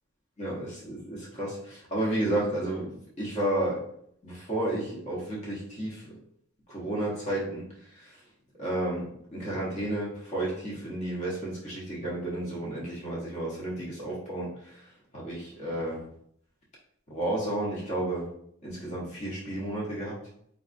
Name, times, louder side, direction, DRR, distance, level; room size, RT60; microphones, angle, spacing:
voice 1, 0.4-3.9 4.2-6.2 6.7-8.2 8.6-14.9 15.1-16.0 17.1-18.3 18.6-20.2, right 1 dB, 30° left, -5 dB, 0.8 m, -32 dB
3.5 x 2.3 x 2.5 m, 0.68 s
head